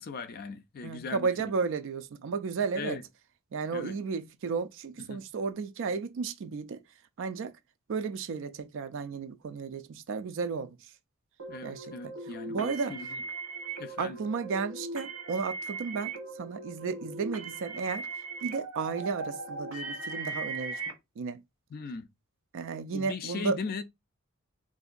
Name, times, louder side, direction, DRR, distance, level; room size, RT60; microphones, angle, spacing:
voice 1, 0.0-1.5 2.8-3.0 3.7-3.9 5.1-5.2 11.5-13.2 13.8-14.2 21.7-22.1 22.9-23.8, left 4 dB, 45° left, 0.4 m, -38 dB
voice 2, 0.8-3.0 3.5-6.8 7.2-7.5 7.9-10.8 11.6-12.1 12.5-13.0 14.0-18.1 18.4-20.8 21.2-21.4 22.5-23.6, right 5 dB, 60° right, 0.4 m, -33 dB
sound 1, 11.4-20.9, right 3 dB, 90° right, 1.1 m, -39 dB
3.7 x 2.6 x 2.4 m
head